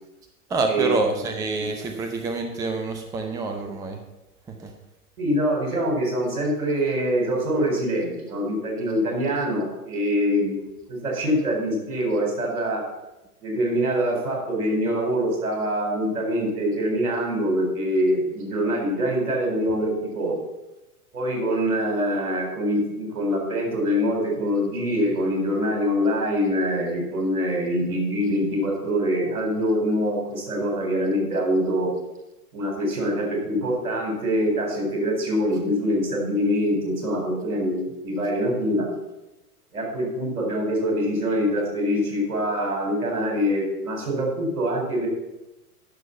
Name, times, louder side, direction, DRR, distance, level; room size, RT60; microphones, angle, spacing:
voice 1, 0.5-4.0 4.5-4.7, right 3 dB, 10° right, 5 dB, 0.6 m, -27 dB
voice 2, 5.2-10.5 10.9-12.8 13.4-20.4 21.1-31.9 32.5-38.9 39.7-45.1, equal, 65° right, 0 dB, 4.4 m, -24 dB
11.0 x 6.3 x 5.7 m, 0.98 s
figure-of-eight pair, 100°, 45 cm